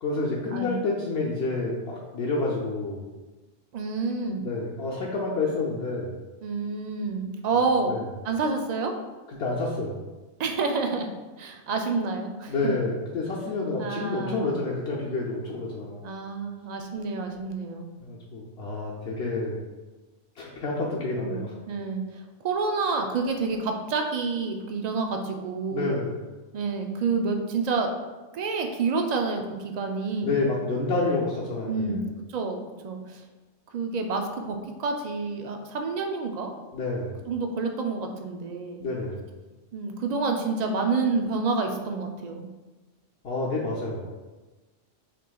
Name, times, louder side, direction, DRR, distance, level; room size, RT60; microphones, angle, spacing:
voice 1, 0.0-3.0 4.4-6.1 7.9-8.0 9.3-10.0 12.5-16.1 18.0-19.6 20.4-21.6 25.7-26.2 30.2-32.0 36.7-37.2 38.8-39.3 43.2-44.1, left 3 dB, 65° left, -4 dB, 0.8 m, -29 dB
voice 2, 3.7-4.4 6.4-8.0 8.2-8.9 10.4-11.1 11.4-12.7 13.8-14.6 16.0-17.9 21.2-21.4 21.7-22.0 22.4-25.9 26.5-27.9 28.3-30.4 31.7-33.2 33.7-36.5 37.3-38.9 39.7-42.5, right 4 dB, 65° right, 4 dB, 0.4 m, -28 dB
5.9 x 3.0 x 2.3 m, 1.2 s
omnidirectional pair, 1.2 m